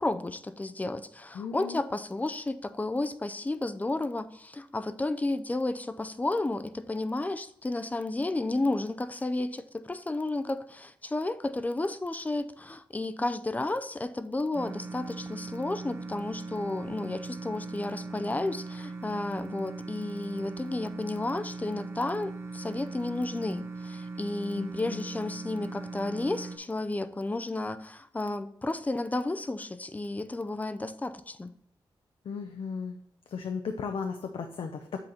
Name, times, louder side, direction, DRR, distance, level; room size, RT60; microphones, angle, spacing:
voice 1, 0.0-31.5, left 2 dB, 15° left, 11 dB, 0.5 m, -32 dB
voice 2, 1.3-1.9 24.6-25.0 32.2-33.0 33.3-35.0, left 5 dB, 85° left, 5 dB, 0.6 m, -35 dB
sound 1, 14.5-26.6, right 3 dB, 30° right, 1.1 m, -40 dB
8.0 x 4.0 x 4.3 m, 0.72 s
wide cardioid pair, 135°, 9 cm